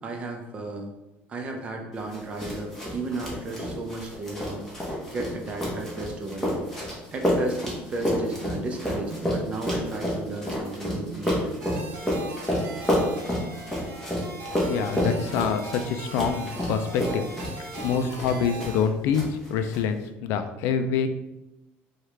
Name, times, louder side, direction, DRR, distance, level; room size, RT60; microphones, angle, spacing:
voice 1, 0.0-0.9 1.3-4.6 5.1-6.6 7.1-11.6 12.1-12.3 17.7-18.0, right 2 dB, 25° right, 2 dB, 0.6 m, -34 dB
sound 1, 2.1-18.9 19.1-19.8, equal, 5° left, 1.1 m, -30 dB
sound 2, 11.6-18.8, right 2 dB, 55° right, 0.8 m, -40 dB
voice 2, 14.7-17.3 17.6-21.1, left 7 dB, 65° left, 9 dB, 0.3 m, -26 dB
4.6 x 2.4 x 3.3 m, 0.95 s
cardioid pair, 155°, 5 cm